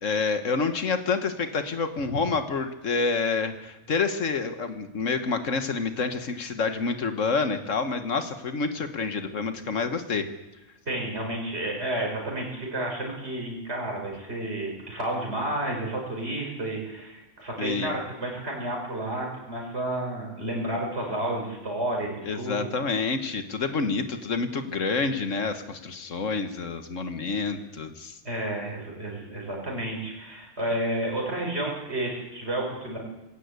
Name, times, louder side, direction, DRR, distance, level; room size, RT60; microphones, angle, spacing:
voice 1, 0.0-10.3 17.6-18.0 22.2-28.2, left 4 dB, 85° left, 8 dB, 1.9 m, -28 dB
voice 2, 10.9-22.7 28.2-33.0, right 1 dB, 60° right, 0 dB, 5.8 m, -31 dB
20.0 x 17.0 x 8.3 m, 1.0 s
omnidirectional pair, 1.3 m